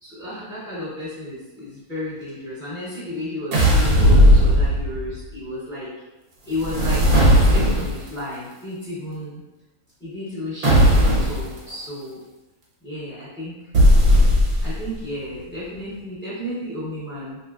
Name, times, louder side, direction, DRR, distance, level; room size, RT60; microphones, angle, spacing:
voice 1, 0.0-5.9 6.5-7.0 7.4-9.4 10.0-12.2 12.8-13.6 14.6-17.4, left 1 dB, 15° left, -11 dB, 0.4 m, -33 dB
sound 1, 3.5-5.1 6.5-8.1 10.6-11.5 13.7-14.9, equal, 85° right, 1.4 m, -15 dB
3.0 x 2.8 x 2.3 m, 1.1 s
omnidirectional pair, 1.6 m